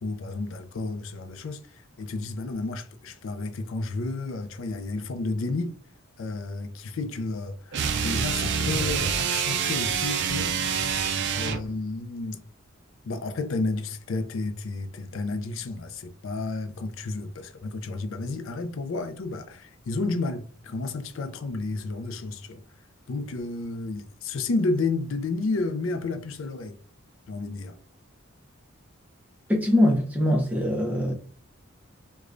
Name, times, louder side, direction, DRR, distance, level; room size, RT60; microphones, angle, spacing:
voice 1, 0.0-5.8 6.2-12.4 13.1-22.6 23.1-26.8 27.3-27.8, left 3 dB, 65° left, 0.4 m, -31 dB
sound 1, 7.7-11.7, right 7 dB, 55° right, 0.4 m, -26 dB
voice 2, 29.5-31.1, left 1 dB, 5° right, 0.6 m, -22 dB
4.8 x 2.2 x 2.5 m
head